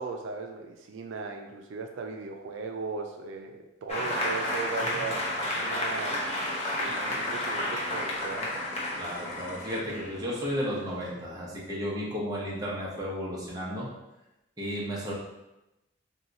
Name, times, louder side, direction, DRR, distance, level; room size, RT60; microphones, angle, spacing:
voice 1, 0.0-6.3 6.8-8.5, right 4 dB, 90° right, 3 dB, 0.3 m, -37 dB
Applause, 3.9-11.1, left 1 dB, 35° left, 0.7 m, -32 dB
sound 1, 4.1-9.8, left 3 dB, 75° left, 0.3 m, -45 dB
voice 2, 9.0-13.9 14.6-15.1, equal, 20° right, -5 dB, 0.8 m, -33 dB
2.8 x 2.3 x 3.8 m, 0.96 s
head